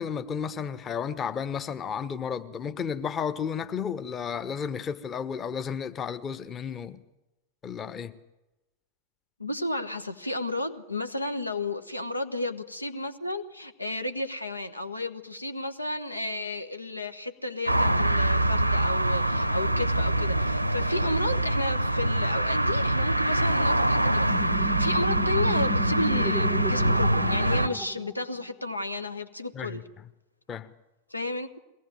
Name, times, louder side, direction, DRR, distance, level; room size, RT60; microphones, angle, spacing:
voice 1, 0.0-7.0 7.6-8.1 29.5-29.8 30.5-30.7, left 7 dB, 25° left, 1.2 m, -32 dB
voice 2, 9.4-29.8 31.1-31.6, left 1 dB, 85° left, 1.3 m, -32 dB
sound 1, 17.7-27.7, right 1 dB, 85° right, 0.7 m, -24 dB
sound 2, 24.3-28.5, left 1 dB, 5° right, 0.7 m, -35 dB
22.5 x 18.0 x 9.3 m
figure-of-eight pair, 90°, 0 cm